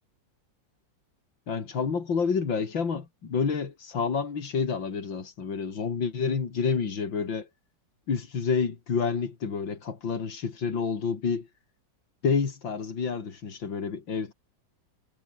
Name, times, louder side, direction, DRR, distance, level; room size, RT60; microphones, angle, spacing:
voice 1, 1.5-7.5 8.1-11.5 12.2-14.3, left 5 dB, 90° left, 3.4 m, -29 dB
omnidirectional pair, 2.0 m